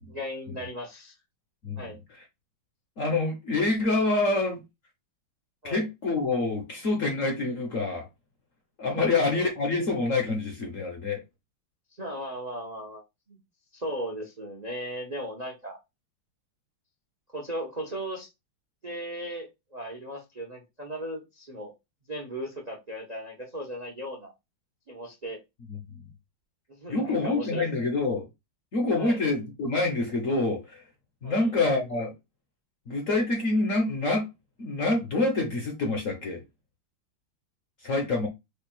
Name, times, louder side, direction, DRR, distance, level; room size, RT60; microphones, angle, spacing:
voice 1, 0.1-1.1 1.8-2.0 5.6-5.9 8.9-9.5 12.0-13.0 13.3-13.4 13.7-15.8 17.3-18.3 18.8-21.7 22.1-24.3 24.9-25.4 26.7-27.7 29.0-29.2 31.2-31.5, equal, 35° right, 0.6 m, -37 dB
voice 2, 3.0-4.6 5.6-8.1 8.8-11.2 25.7-26.0 26.9-28.3 28.7-30.8 31.2-32.1 32.9-34.3 34.6-36.4 37.8-38.3, left 3 dB, 50° left, 1.1 m, -26 dB
5.0 x 2.4 x 4.4 m
omnidirectional pair, 2.4 m